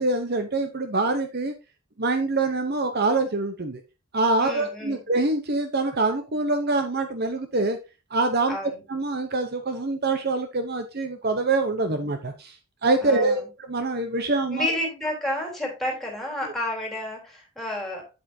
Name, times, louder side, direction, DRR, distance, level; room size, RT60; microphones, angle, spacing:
voice 1, 0.0-1.5 2.0-3.8 4.1-7.8 8.1-8.6 8.9-12.6 12.8-14.7, right 2 dB, 45° right, 7 dB, 0.9 m, -25 dB
voice 2, 4.4-5.0 8.5-8.8 13.0-13.5 14.5-18.1, left 1 dB, ahead, -1 dB, 3.6 m, -30 dB
8.9 x 8.3 x 2.7 m, 0.28 s
head